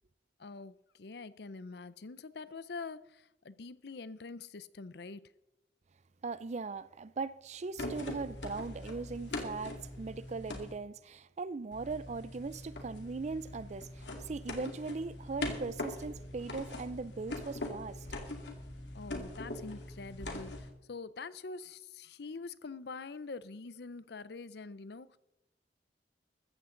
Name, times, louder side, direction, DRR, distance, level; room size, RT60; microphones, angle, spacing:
voice 1, 0.4-5.3 18.9-25.2, left 4 dB, 65° left, 0.6 m, -45 dB
voice 2, 6.2-18.1, right 4 dB, 40° right, 0.4 m, -39 dB
sound 1, 7.8-10.7 11.7-20.7, left 1 dB, 85° left, 2.5 m, -42 dB
15.0 x 14.0 x 3.9 m
head